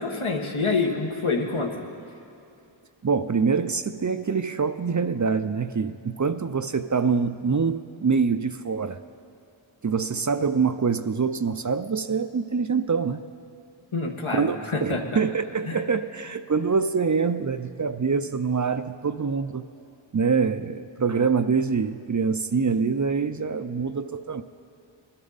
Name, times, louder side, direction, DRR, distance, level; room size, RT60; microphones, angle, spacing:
voice 1, 0.0-1.7 13.9-15.0 15.7-15.8, left 3 dB, 80° left, 1 dB, 1.6 m, -26 dB
voice 2, 3.0-9.0 9.8-13.2 14.3-19.7 20.1-24.4, right 5 dB, 40° right, 10 dB, 0.5 m, -25 dB
21.5 x 12.5 x 4.0 m, 2.7 s
wide cardioid pair, 45°, 49 cm